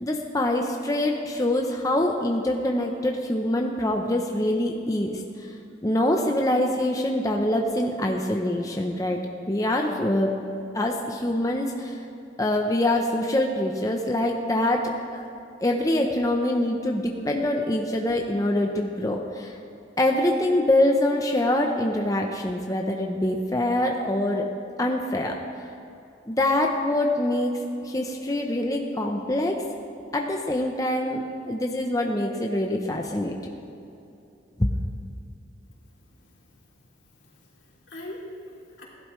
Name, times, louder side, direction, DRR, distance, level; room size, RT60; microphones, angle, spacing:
voice 1, 0.0-5.5 5.8-9.2 9.5-10.3 10.7-12.0 12.4-15.3 15.6-19.5 20.0-24.5 24.8-25.4 26.3-29.6 30.1-33.4 34.6-34.7, left 1 dB, 20° left, 1 dB, 0.7 m, -25 dB
voice 2, 37.1-38.8, left 1 dB, 85° left, -5 dB, 3.0 m, -42 dB
16.0 x 11.5 x 3.2 m, 2.8 s
head